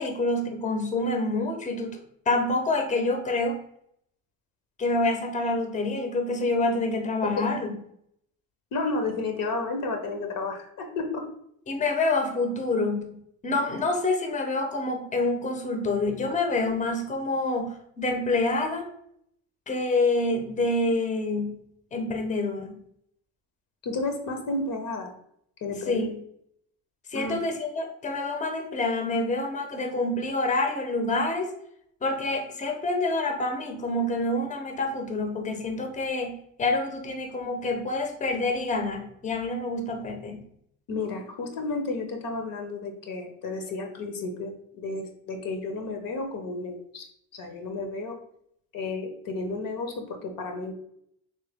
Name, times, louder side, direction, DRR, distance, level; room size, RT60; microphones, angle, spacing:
voice 1, 0.0-2.0 2.3-3.6 4.8-7.8 11.7-13.1 13.4-18.9 19.7-21.6 21.9-22.8 25.9-26.1 27.1-31.5 32.0-40.4, left 2 dB, 20° left, 5 dB, 0.7 m, -27 dB
voice 2, 8.7-11.2 23.8-25.1 25.6-26.0 27.1-27.4 40.9-47.1 47.3-48.2 48.7-50.7, left 3 dB, 60° left, 4 dB, 0.9 m, -32 dB
3.2 x 2.9 x 3.4 m, 0.71 s
supercardioid pair, 65°, 37 cm